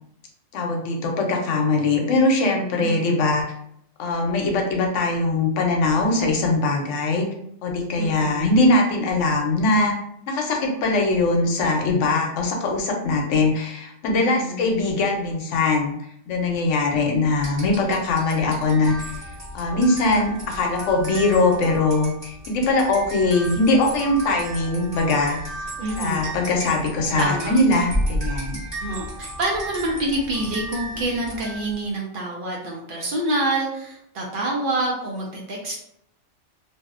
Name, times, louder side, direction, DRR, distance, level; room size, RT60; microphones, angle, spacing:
voice 1, 0.5-3.4 4.0-7.3 7.6-9.9 10.3-15.9 16.3-19.1 19.5-25.4 26.0-28.6, left 2 dB, 85° left, 1 dB, 0.9 m, -21 dB
voice 2, 2.8-3.2 8.0-8.5 14.2-14.7 25.8-26.3 27.2-27.5 28.8-35.8, right 2 dB, 60° right, -2 dB, 0.6 m, -27 dB
sound 1, 17.4-31.8, equal, 25° right, 1.1 m, -33 dB
2.6 x 2.0 x 2.4 m, 0.74 s
omnidirectional pair, 1.2 m